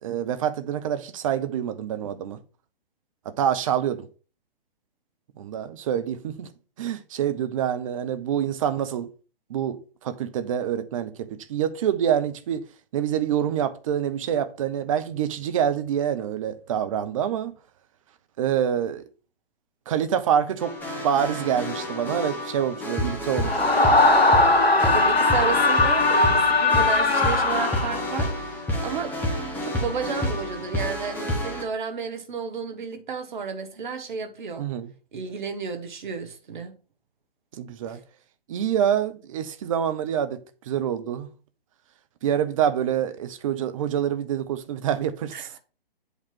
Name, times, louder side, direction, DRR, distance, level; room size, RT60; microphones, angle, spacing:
voice 1, 0.0-2.4 3.3-4.1 5.4-6.5 6.8-9.1 9.5-9.8 10.0-12.6 12.9-17.5 18.4-19.0 19.9-20.7 21.0-23.6 34.6-34.9 37.6-38.0 38.5-40.4 40.7-41.3 42.2-45.5, right 9 dB, 35° right, 0.8 m, -26 dB
sound 1, 20.6-31.6, left 1 dB, 5° left, 1.2 m, -29 dB
Screaming, 23.4-28.3, left 2 dB, 85° left, 1.3 m, -20 dB
voice 2, 24.8-29.1 29.6-34.7 35.1-36.7 37.9-38.0 45.3-45.5, right 5 dB, 55° right, 1.4 m, -32 dB
8.2 x 3.3 x 6.0 m
figure-of-eight pair, 130°, 29 cm